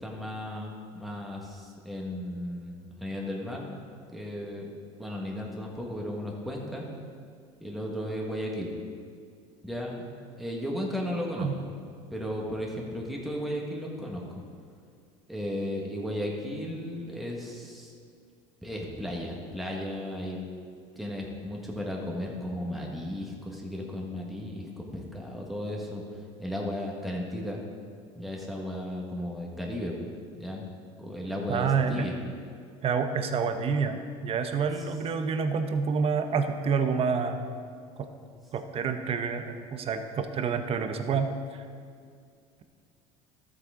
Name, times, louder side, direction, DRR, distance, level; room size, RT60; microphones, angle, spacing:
voice 1, 0.0-3.7 4.1-4.7 5.0-6.8 7.6-8.7 9.6-10.0 10.4-11.5 12.1-14.2 15.3-17.9 18.6-20.4 20.9-26.0 26.4-27.6 28.1-30.7 31.0-32.1, left 1 dB, ahead, -2 dB, 1.5 m, -35 dB
voice 2, 31.5-32.1 32.8-37.4 38.0-38.1 38.5-41.6, right 5 dB, 40° right, 7 dB, 0.9 m, -28 dB
12.5 x 8.3 x 3.8 m, 2.2 s
supercardioid pair, 110°, 16 cm